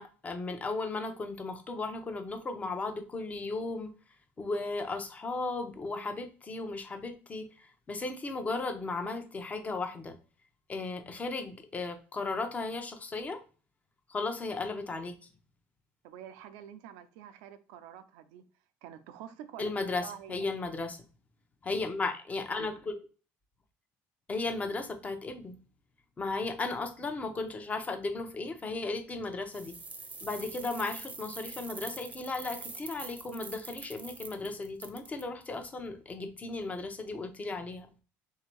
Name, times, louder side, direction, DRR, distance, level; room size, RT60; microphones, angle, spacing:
voice 1, 0.0-3.9 4.4-10.2 10.7-13.4 14.1-15.1 19.6-21.0 21.6-23.1 24.3-25.6 26.2-29.8 30.2-37.9, left 3 dB, 25° left, 0.7 m, -35 dB
voice 2, 16.0-18.5 18.8-20.5, right 10 dB, 90° right, 0.5 m, -47 dB
sound 1, 29.5-35.2, right 4 dB, 25° right, 0.7 m, -44 dB
3.4 x 2.8 x 4.5 m
cardioid pair, 110°, 6 cm